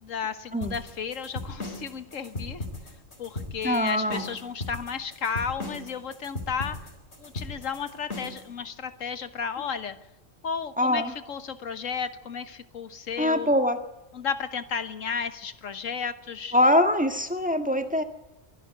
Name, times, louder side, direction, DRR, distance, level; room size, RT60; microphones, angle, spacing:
voice 1, 0.0-2.7 3.2-6.8 7.2-10.0 10.4-11.0 11.3-13.5 14.1-16.6, left 6 dB, 90° left, 11 dB, 1.6 m, -33 dB
sound 1, 0.6-8.5, left 2 dB, 60° left, 4.1 m, -37 dB
voice 2, 3.6-4.2 10.8-11.1 13.2-13.8 16.5-18.0, left 1 dB, 5° right, 6 dB, 1.6 m, -23 dB
24.0 x 11.5 x 9.5 m, 0.97 s
omnidirectional pair, 1.3 m